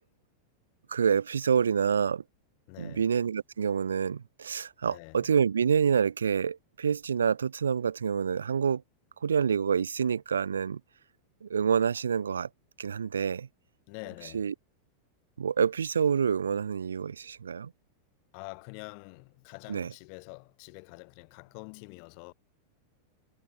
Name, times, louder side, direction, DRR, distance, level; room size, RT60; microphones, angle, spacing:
voice 1, 0.9-2.2 2.8-8.8 9.2-10.8 11.4-12.5 12.8-13.5 14.3-14.5 15.4-17.7 19.7-19.9, right 7 dB, 70° right, 0.4 m, -27 dB
voice 2, 2.7-3.0 4.8-5.2 13.9-14.5 18.3-22.3, left 40 dB or more, 45° left, 3.4 m, -46 dB
figure-of-eight pair, 90°, 0 cm